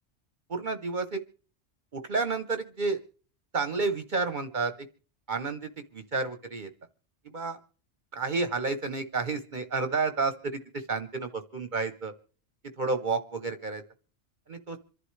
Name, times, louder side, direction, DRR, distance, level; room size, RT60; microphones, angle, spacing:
voice 1, 0.5-1.2 1.9-3.0 3.5-4.7 5.3-6.7 7.3-7.6 8.1-12.1 12.8-13.8 14.5-14.8, right 4 dB, 45° right, 8 dB, 1.0 m, -30 dB
26.5 x 11.5 x 3.2 m, 0.42 s
omnidirectional pair, 1.2 m